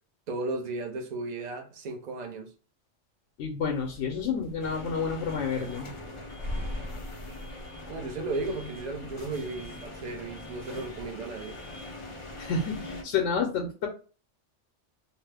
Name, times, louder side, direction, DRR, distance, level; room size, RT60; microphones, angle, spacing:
voice 1, 0.3-2.5 7.9-11.6, right 3 dB, 45° right, 0.6 m, -35 dB
voice 2, 3.4-5.9 7.8-7.9 12.4-13.9, left 5 dB, 75° left, 0.9 m, -30 dB
sound 1, 3.6-11.1, left 1 dB, 70° right, 1.4 m, -43 dB
sound 2, 4.6-13.0, left 2 dB, 40° left, 0.4 m, -42 dB
2.8 x 2.0 x 3.2 m
omnidirectional pair, 1.2 m